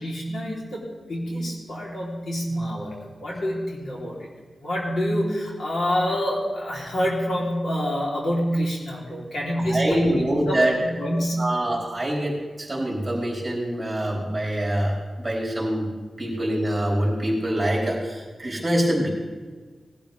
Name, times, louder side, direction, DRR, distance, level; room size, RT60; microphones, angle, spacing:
voice 1, 0.0-4.3 4.6-11.5, equal, 75° left, -4 dB, 3.6 m, -27 dB
voice 2, 9.6-10.7 11.4-15.9 16.2-19.1, right 1 dB, 20° right, -3 dB, 3.9 m, -25 dB
18.5 x 12.5 x 3.5 m, 1.4 s
wide cardioid pair, 115°, 0 cm